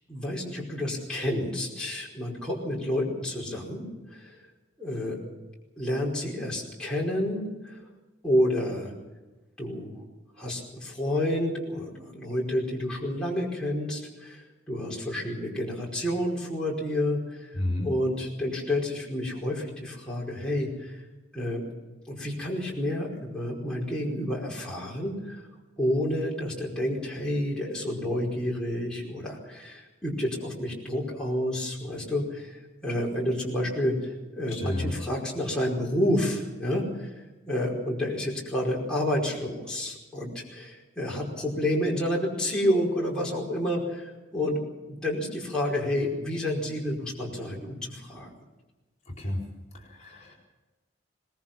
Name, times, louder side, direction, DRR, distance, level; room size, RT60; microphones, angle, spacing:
voice 1, 0.1-4.4 4.8-5.2 5.8-7.8 8.2-8.9 9.6-9.9 10.4-17.5 17.8-21.0 21.3-21.7 22.1-25.4 25.8-37.1 37.5-44.6 44.9-48.3, left 1 dB, 5° left, -4 dB, 5.0 m, -29 dB
voice 2, 17.5-17.9 34.5-34.9 49.2-49.4 50.0-50.3, left 1 dB, 35° left, 0 dB, 4.3 m, -30 dB
22.5 x 20.5 x 6.0 m, 1.1 s
head